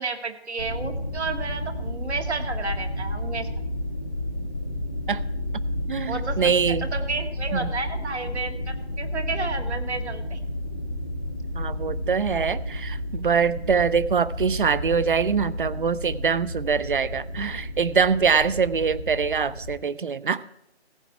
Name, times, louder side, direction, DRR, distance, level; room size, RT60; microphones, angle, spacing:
voice 1, 0.0-3.5 6.1-10.4, right 4 dB, 75° right, 6 dB, 1.8 m, -32 dB
sound 1, 0.6-19.8, left 1 dB, 20° left, 0.5 m, -31 dB
voice 2, 5.9-6.9 7.5-7.7 11.5-20.4, right 6 dB, 50° right, 18 dB, 0.5 m, -24 dB
15.5 x 8.5 x 4.7 m, 0.81 s
figure-of-eight pair, 160°, 34 cm